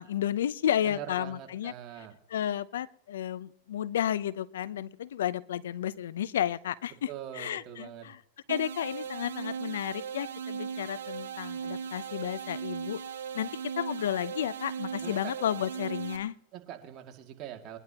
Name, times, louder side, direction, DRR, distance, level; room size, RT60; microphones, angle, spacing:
voice 1, 0.0-1.7 2.3-7.1 7.3-8.2 8.5-13.0 13.3-13.5 13.8-16.3, left 10 dB, 75° left, 20 dB, 0.6 m, -32 dB
voice 2, 0.8-2.2 7.1-8.1 15.0-15.3 16.5-17.8, right 11 dB, 40° right, 3 dB, 2.2 m, -43 dB
sound 1, 8.5-16.2, right 7 dB, 85° right, 1.4 m, -38 dB
22.5 x 11.0 x 2.9 m, 0.67 s
hypercardioid pair, 110°, 0 cm